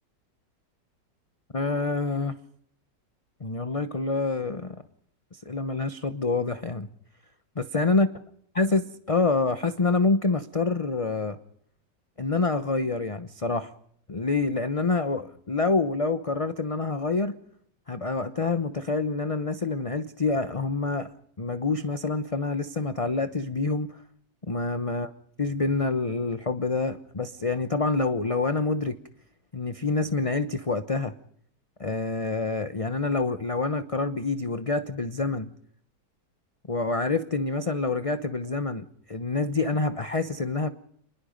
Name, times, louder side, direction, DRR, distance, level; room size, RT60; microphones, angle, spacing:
voice 1, 1.5-2.4 3.4-4.8 5.3-6.9 7.6-8.1 8.6-11.4 12.2-13.7 14.1-17.4 17.9-21.1 21.4-24.0 24.5-25.1 25.4-29.0 29.5-31.1 31.8-35.5 36.7-40.7, left 3 dB, 25° left, 10 dB, 0.8 m, -27 dB
28.0 x 21.0 x 5.3 m, 0.64 s
omnidirectional pair, 1.9 m